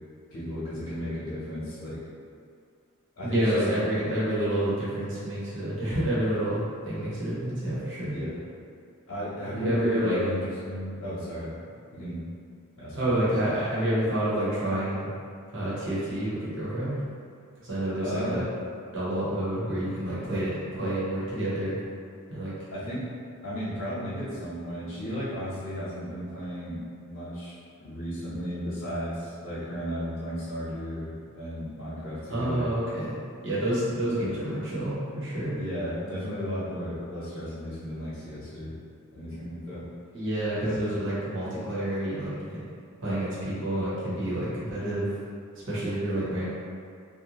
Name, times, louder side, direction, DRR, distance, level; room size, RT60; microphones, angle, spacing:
voice 1, 0.3-2.0 3.2-3.8 8.1-8.4 9.1-11.5 11.9-12.2 12.8-13.3 18.0-18.4 22.7-23.1 23.4-32.7 34.2-34.4 35.5-38.7 39.1-39.9 40.6-40.8, equal, 85° left, -11 dB, 0.8 m, -34 dB
voice 2, 3.2-8.1 9.6-10.2 12.9-15.1 15.5-17.0 17.6-18.4 18.9-21.8 22.3-22.5 32.3-33.2 33.4-35.6 40.1-42.6 43.0-45.1 45.6-46.5, right 1 dB, 60° right, -9 dB, 1.0 m, -28 dB
2.6 x 2.2 x 2.9 m, 2.3 s
head